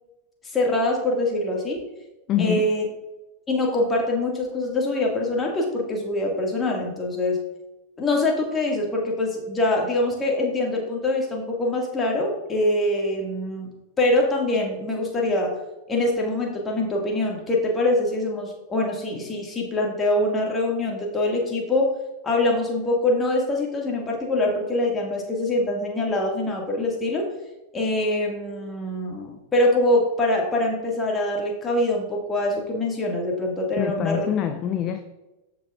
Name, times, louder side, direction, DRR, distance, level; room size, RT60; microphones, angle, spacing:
voice 1, 0.4-1.8 2.4-2.9 3.5-7.4 8.0-13.7 14.0-15.5 15.9-21.9 22.2-27.3 27.7-34.3, left 1 dB, 20° left, -1 dB, 2.0 m, -24 dB
voice 2, 2.3-2.7 33.8-35.0, left 9 dB, 35° left, 7 dB, 0.5 m, -25 dB
13.5 x 6.0 x 2.5 m, 1.0 s
figure-of-eight pair, 90°, 0 cm